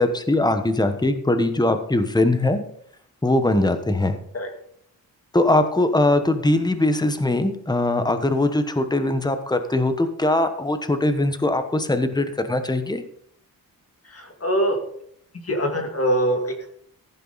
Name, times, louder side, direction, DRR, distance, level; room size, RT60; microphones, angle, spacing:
voice 1, 0.0-2.6 3.2-4.2 5.3-13.0, left 2 dB, 10° left, 9 dB, 1.2 m, -21 dB
voice 2, 14.0-14.8 15.4-16.7, right 1 dB, 40° left, 3 dB, 2.3 m, -23 dB
15.0 x 9.3 x 4.1 m, 0.64 s
wide cardioid pair, 130°, 37 cm